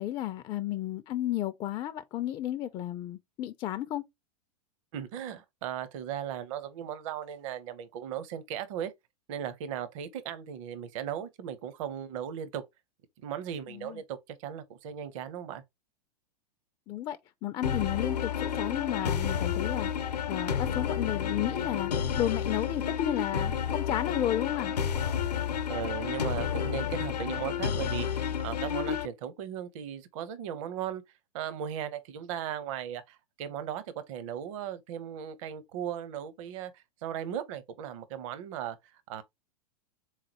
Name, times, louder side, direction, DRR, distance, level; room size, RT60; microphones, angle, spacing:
voice 1, 0.0-4.0 13.7-14.0 16.9-19.9 20.3-24.7, left 12 dB, 25° left, 0.3 m, -33 dB
voice 2, 4.9-8.9 9.3-12.7 13.2-15.6 25.4-31.0 31.3-39.2, right 9 dB, 50° right, 0.7 m, -37 dB
sound 1, 17.6-29.1, left 8 dB, 80° left, 0.7 m, -31 dB
3.6 x 3.2 x 2.8 m
figure-of-eight pair, 100°, 21 cm